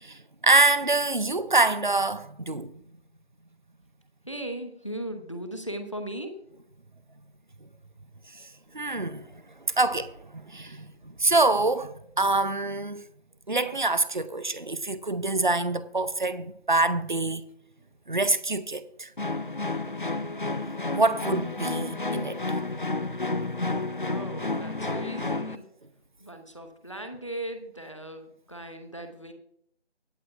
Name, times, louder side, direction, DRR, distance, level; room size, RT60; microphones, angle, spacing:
voice 1, 0.0-2.7 8.7-9.2 9.8-10.9 11.2-13.1 13.5-17.4 18.1-19.1 20.9-22.6, right 2 dB, 45° right, 0.6 m, -25 dB
voice 2, 4.3-6.3 24.0-25.6 26.2-29.3, right 1 dB, 30° left, 1.0 m, -38 dB
sound 1, 19.2-25.6, left 2 dB, 50° left, 0.6 m, -31 dB
24.5 x 8.2 x 2.3 m
figure-of-eight pair, 180°, 33 cm